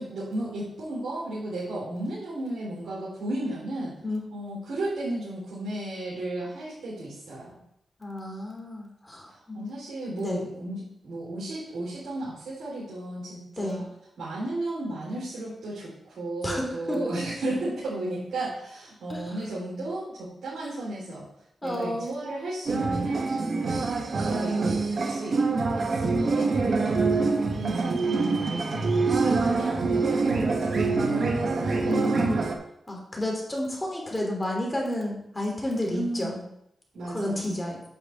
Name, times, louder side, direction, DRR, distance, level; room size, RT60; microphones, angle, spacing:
voice 1, 0.0-4.0 4.3-7.6 9.3-13.8 14.2-21.3 21.6-25.4 25.8-31.9 32.2-32.5 35.9-36.4 36.9-37.6, right 1 dB, 80° right, -8 dB, 4.2 m, -34 dB
voice 2, 8.0-10.5 13.6-13.9 16.4-17.1 19.1-19.4 21.6-22.2 24.3-24.6 31.8-32.4 32.9-36.3 37.0-37.8, left 1 dB, 20° left, -1 dB, 3.4 m, -31 dB
sound 1, 22.7-32.5, right 3 dB, 60° right, 1.2 m, -25 dB
8.9 x 7.9 x 3.7 m, 0.74 s
cardioid pair, 50°, 0 cm